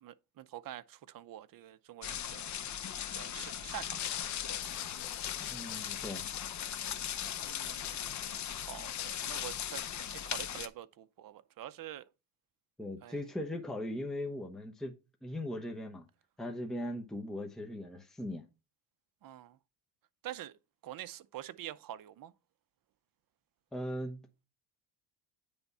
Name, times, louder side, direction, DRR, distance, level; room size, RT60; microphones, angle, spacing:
voice 1, 0.0-2.5 3.1-4.8 7.3-8.0 8.5-12.1 13.0-13.2 19.2-19.6 20.2-20.5 20.8-22.3, right 12 dB, 45° right, 0.7 m, -46 dB
sound 1, 2.0-10.7, left 9 dB, 40° left, 0.7 m, -38 dB
sound 2, 3.7-6.4 6.6-8.3 8.7-10.3, left 18 dB, 90° left, 0.6 m, -46 dB
voice 2, 5.4-6.3 12.8-14.9 15.2-16.0 16.4-18.5 23.7-24.2, left 1 dB, ahead, 0.9 m, -39 dB
9.5 x 3.5 x 4.2 m
cardioid pair, 105°, 46 cm